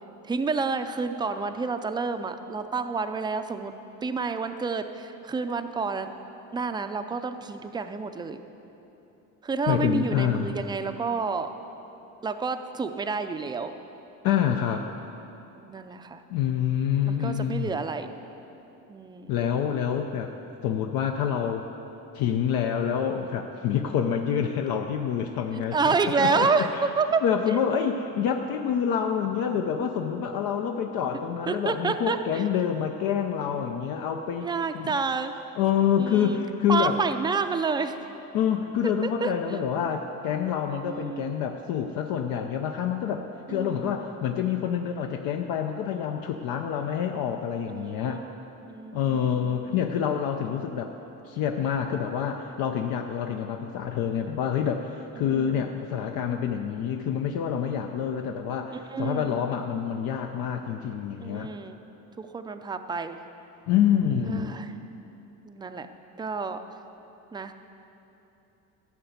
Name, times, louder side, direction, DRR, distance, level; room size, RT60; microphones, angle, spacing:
voice 1, 0.2-3.7 4.0-6.1 6.5-8.4 9.4-11.5 12.2-13.7 15.7-16.2 17.0-18.1 18.9-19.3 25.5-27.6 31.5-32.4 34.4-35.3 36.0-36.4 36.7-38.0 39.0-39.6 40.8-41.4 43.5-44.1 47.7-48.4 48.7-49.8 55.1-55.7 58.7-59.4 61.2-61.8 62.2-63.2 64.3-64.7 65.4-65.9 66.2-66.6 67.3-67.5, right 4 dB, 10° right, 8 dB, 0.4 m, -29 dB
voice 2, 9.7-10.6 14.2-14.9 16.3-17.8 19.3-20.3 20.6-21.6 22.1-26.6 27.2-34.5 34.7-35.0 35.6-37.0 38.3-48.2 48.9-50.9 51.2-61.5 63.7-64.5, left 8 dB, 70° left, 4 dB, 0.7 m, -27 dB
14.0 x 5.9 x 8.0 m, 3.0 s
cardioid pair, 125°, 36 cm